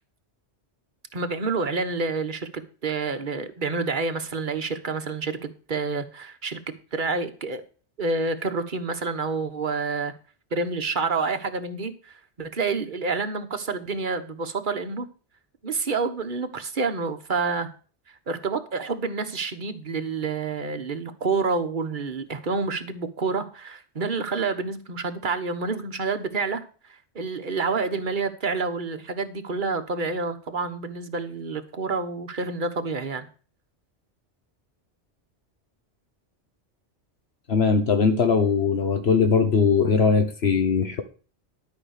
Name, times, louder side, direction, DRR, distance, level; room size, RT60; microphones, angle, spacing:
voice 1, 1.1-6.6 6.9-7.6 8.0-10.1 10.5-15.0 15.6-17.7 18.3-26.6 27.1-33.3, right 4 dB, 45° right, 8 dB, 1.4 m, -28 dB
voice 2, 37.5-41.0, left 5 dB, 65° left, 7 dB, 1.3 m, -20 dB
12.0 x 5.8 x 6.4 m, 0.38 s
omnidirectional pair, 1.2 m